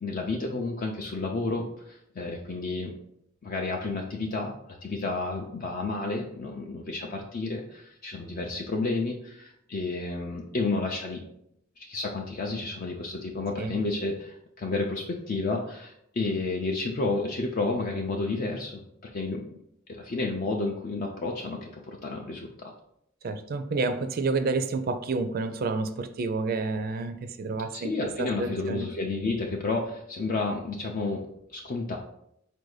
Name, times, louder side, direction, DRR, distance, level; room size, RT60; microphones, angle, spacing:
voice 1, 0.0-2.9 3.4-11.2 11.8-18.8 19.1-19.5 19.9-22.7 27.7-32.0, left 3 dB, 45° left, 1 dB, 0.4 m, -31 dB
voice 2, 23.2-27.9 28.2-28.9, right 3 dB, 50° right, 9 dB, 0.4 m, -29 dB
4.3 x 2.6 x 4.7 m, 0.75 s
head